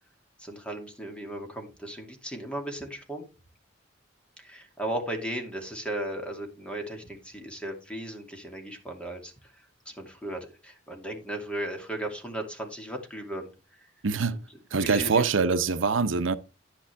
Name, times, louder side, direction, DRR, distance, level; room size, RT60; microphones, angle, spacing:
voice 1, 0.4-3.3 4.4-9.3 9.9-13.9 14.7-15.3, right 1 dB, 5° left, 2.5 m, -36 dB
voice 2, 14.0-14.4 14.7-16.4, right 4 dB, 80° right, 0.7 m, -24 dB
10.5 x 10.5 x 3.4 m
head